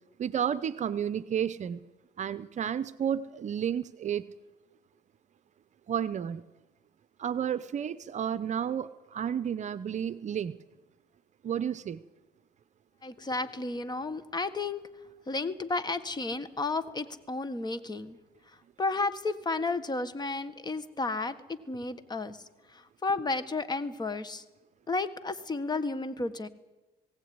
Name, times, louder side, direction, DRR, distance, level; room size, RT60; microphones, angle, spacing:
voice 1, 0.2-1.8 2.2-4.3 5.9-6.4 7.2-10.6 11.4-12.0, right 8 dB, 45° right, 14 dB, 0.8 m, -31 dB
voice 2, 13.0-14.8 15.3-18.2 18.5-24.4 24.9-26.5, left 3 dB, 25° left, 13 dB, 1.5 m, -33 dB
19.5 x 17.0 x 9.6 m, 1.1 s
cardioid pair, 110°, 17 cm